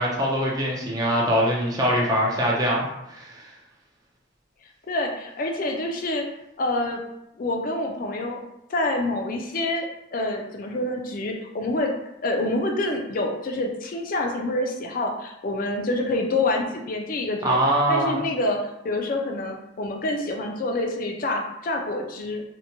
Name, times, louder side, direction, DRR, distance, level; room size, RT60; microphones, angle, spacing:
voice 1, 0.0-3.5 17.4-18.2, equal, 20° right, -3 dB, 0.4 m, -23 dB
voice 2, 4.9-6.3 6.6-7.0 7.4-8.4 8.7-9.9 10.1-11.9 12.2-17.6 17.9-22.4, left 2 dB, 45° left, 2 dB, 0.4 m, -27 dB
2.8 x 2.1 x 2.6 m, 0.86 s
head